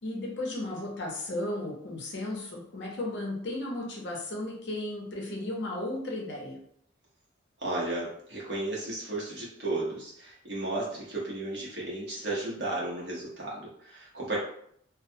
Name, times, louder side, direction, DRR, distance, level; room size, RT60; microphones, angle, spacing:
voice 1, 0.0-6.6, left 1 dB, 60° left, -2 dB, 0.6 m, -35 dB
voice 2, 7.6-14.4, right 2 dB, 55° right, -6 dB, 0.9 m, -34 dB
2.3 x 2.2 x 2.7 m, 0.67 s
head